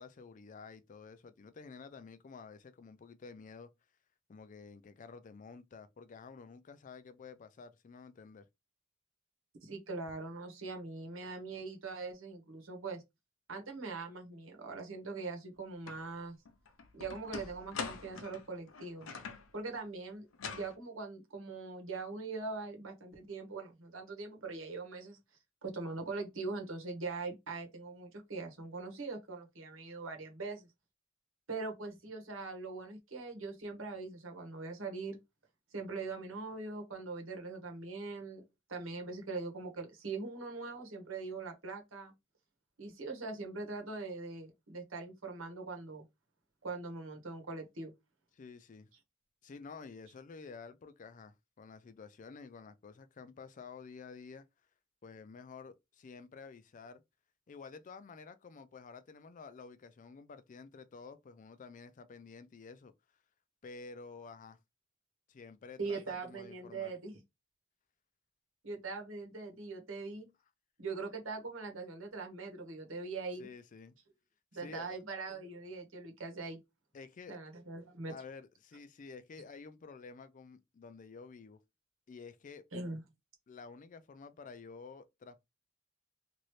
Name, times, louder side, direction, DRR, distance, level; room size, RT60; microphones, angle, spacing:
voice 1, 0.0-3.7 4.3-8.5 48.3-48.9 49.4-54.5 55.0-57.0 57.5-62.9 63.6-64.6 65.3-66.9 73.4-73.9 74.5-75.0 76.9-77.4 78.1-81.6 82.1-82.6 83.5-85.5, left 4 dB, 40° left, 0.4 m, -51 dB
voice 2, 9.6-13.0 13.5-16.4 16.9-19.1 19.5-20.3 20.5-25.2 25.6-30.7 31.5-35.2 35.7-38.4 38.7-42.1 42.8-46.0 46.6-47.9 65.8-67.1 68.6-70.3 70.8-73.5 74.5-76.6 77.3-78.1 82.7-83.0, right 3 dB, 80° right, 1.2 m, -42 dB
sound 1, 15.9-16.0 16.5-19.5 20.3-20.7, left 5 dB, 85° left, 0.6 m, -43 dB
2.9 x 2.7 x 3.1 m
head